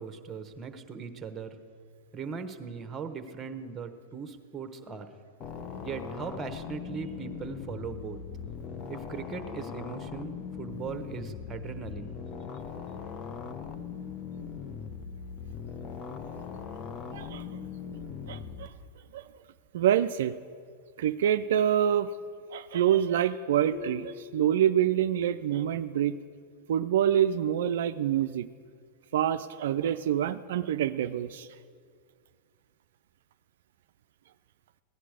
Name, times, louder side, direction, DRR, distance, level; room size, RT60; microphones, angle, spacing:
voice 1, 0.0-1.6 2.1-5.1 5.8-8.2 8.9-12.2, right 6 dB, 25° right, 9 dB, 1.1 m, -39 dB
sound 1, 5.4-18.7, left 6 dB, 40° left, 0.9 m, -40 dB
voice 2, 17.1-17.4 18.3-18.7 19.1-19.2 19.7-20.3 21.0-22.1 22.5-26.1 26.7-28.5 29.1-31.5, right 10 dB, 70° right, 9 dB, 0.4 m, -26 dB
sound 2, 23.7-25.4, left 10 dB, 80° left, 1.4 m, -45 dB
16.5 x 10.0 x 4.9 m, 2.1 s
hypercardioid pair, 100°, 0 cm